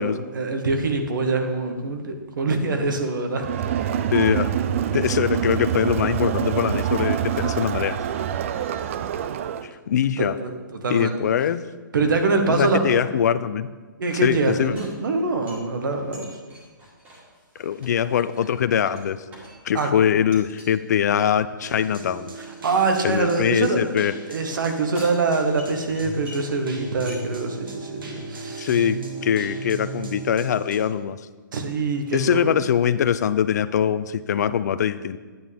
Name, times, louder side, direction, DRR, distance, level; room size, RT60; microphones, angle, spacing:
voice 1, 0.0-3.5 10.2-11.2 11.9-13.0 14.0-16.4 19.7-19.9 22.6-23.9 24.3-28.7 31.5-32.6, right 3 dB, 70° right, 5 dB, 1.4 m, -24 dB
Crowd, 3.4-9.7, right 9 dB, 40° right, 0.4 m, -25 dB
voice 2, 4.1-4.5 4.9-8.0 9.6-10.4 10.9-11.6 12.5-13.7 14.2-14.8 17.6-19.2 19.6-22.3 23.0-24.1 28.6-31.2 32.1-35.2, left 9 dB, 55° left, 14 dB, 0.4 m, -22 dB
sound 1, 14.5-19.9 20.3-20.7 21.2-23.9 24.6-26.6 26.9-27.5 27.9-28.0 28.3-28.8, equal, 15° right, 2.2 m, -47 dB
sound 2, 21.6-30.8, right 3 dB, 90° right, 2.1 m, -37 dB
9.4 x 8.9 x 3.5 m, 1.4 s
hypercardioid pair, 155°, 11 cm